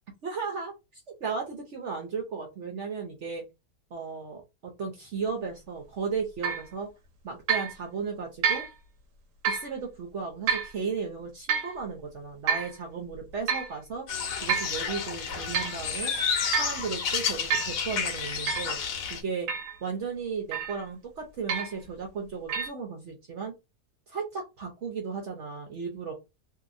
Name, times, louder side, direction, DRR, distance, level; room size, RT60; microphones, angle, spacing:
voice 1, 0.2-3.4 3.9-6.9 7.2-8.6 9.5-14.1 14.4-16.1 16.5-18.8 19.1-19.5 19.8-23.6 24.1-26.1, right 5 dB, 60° right, 1 dB, 0.8 m, -35 dB
sound 1, 6.4-6.7 7.5-7.7 8.4-8.7 9.4-9.7 10.5-10.7 11.5-11.7 12.5-12.7 13.5-13.7 14.5-14.8 15.3-15.8 16.5-16.8 17.5-17.8 18.5-18.7 19.5-19.8 20.5-20.8 21.5-21.8 22.5-22.7, right 7 dB, 80° right, 1.2 m, -28 dB
sound 2, 14.1-19.2, left 6 dB, 85° left, 1.3 m, -31 dB
2.9 x 2.7 x 2.5 m, 0.24 s
omnidirectional pair, 1.7 m